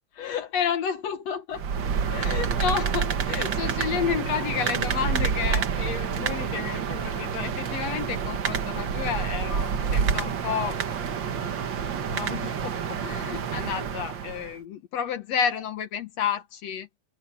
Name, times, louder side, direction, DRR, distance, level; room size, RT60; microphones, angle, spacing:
voice 1, 0.1-1.6 2.1-10.8 11.1-11.6 12.0-16.9, left 7 dB, 65° left, 1.9 m, -31 dB
sound 1, 1.5-14.5, right 7 dB, 60° right, 1.2 m, -28 dB
omnidirectional pair, 4.0 m